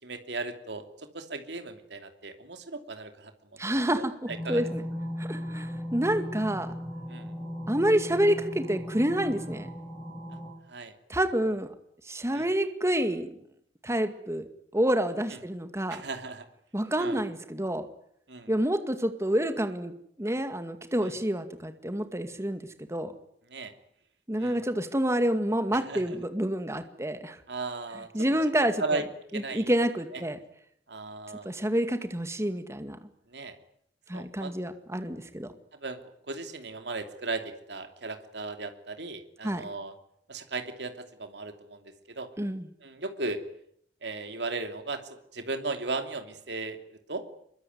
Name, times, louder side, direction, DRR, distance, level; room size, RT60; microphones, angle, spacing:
voice 1, 0.0-3.3 3.9-4.6 7.1-7.3 10.7-10.9 12.3-12.5 15.9-16.5 17.0-17.2 18.3-18.5 23.5-23.7 24.4-24.6 25.7-26.2 27.5-28.1 28.6-29.0 29.3-29.7 30.1-30.2 30.9-31.5 33.3-33.6 34.1-34.5 35.8-39.9 40.3-42.3 42.8-43.4 44.0-45.0 45.3-47.2, right 3 dB, 70° right, 7 dB, 2.9 m, -36 dB
voice 2, 3.6-4.9 5.2-6.7 7.7-9.7 11.1-11.7 12.1-13.3 13.8-16.0 16.7-17.9 18.5-19.9 20.2-22.6 22.9-23.1 24.3-27.4 28.1-29.0 29.3-30.4 31.5-33.0 34.1-35.5 39.4-39.6 42.4-42.7, right 1 dB, 15° right, 8 dB, 2.1 m, -28 dB
sound 1, 4.3-10.5, equal, 5° left, 7.1 m, -37 dB
25.0 x 22.5 x 9.5 m, 0.69 s
head